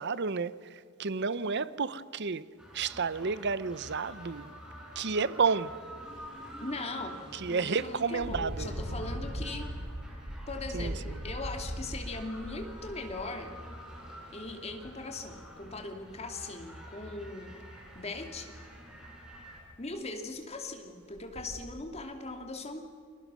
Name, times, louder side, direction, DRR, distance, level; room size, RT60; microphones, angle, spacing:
voice 1, 0.0-2.4 2.7-4.5 5.0-5.8 7.3-8.7 10.7-11.2, right 5 dB, 55° right, 0.8 m, -31 dB
sound 1, 2.6-19.6, equal, 5° right, 6.2 m, -48 dB
Engine, 6.1-6.3 6.7-6.9 8.1-13.9 14.8-14.9 15.3-16.1 17.8-18.0 18.3-18.4 18.9-19.0 19.3-19.8 20.4-20.5 21.1-21.6, equal, 75° right, 5.0 m, -39 dB
voice 2, 6.6-7.2 7.5-9.7 10.5-13.5 14.3-17.5 17.9-18.5 19.8-22.8, left 2 dB, 30° left, 2.6 m, -39 dB
30.0 x 22.0 x 6.3 m
head